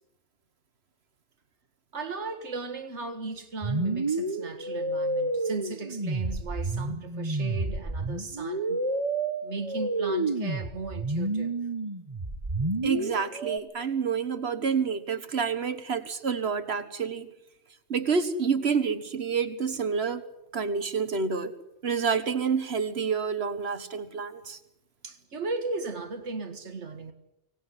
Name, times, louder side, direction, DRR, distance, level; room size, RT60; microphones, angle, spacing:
voice 1, 1.9-8.8 9.4-11.6 25.0-27.1, right 3 dB, 85° right, 1.9 m, -36 dB
sound 1, 3.6-13.6, right 2 dB, 25° right, 1.6 m, -30 dB
voice 2, 12.8-17.3 17.9-20.3 20.5-21.5 21.8-24.6, right 6 dB, 65° right, 1.7 m, -28 dB
24.5 x 18.5 x 9.9 m
omnidirectional pair, 1.2 m